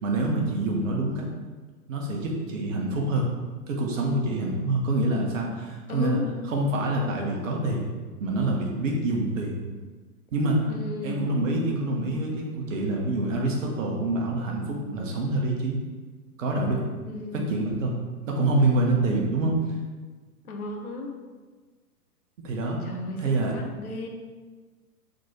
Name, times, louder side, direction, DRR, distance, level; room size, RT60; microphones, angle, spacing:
voice 1, 0.0-1.3 1.9-3.3 3.7-6.2 6.5-7.9 8.2-9.6 10.3-10.7 11.0-15.8 16.4-16.8 17.3-18.0 18.3-19.6 22.4-22.8 23.2-23.5, right 2 dB, 55° right, -1 dB, 1.6 m, -26 dB
voice 2, 5.9-6.3 10.7-11.2 17.0-17.5 20.4-21.1 22.8-24.1, left 2 dB, 65° left, 2 dB, 1.2 m, -34 dB
6.3 x 4.2 x 4.4 m, 1.4 s
figure-of-eight pair, 110°, 46 cm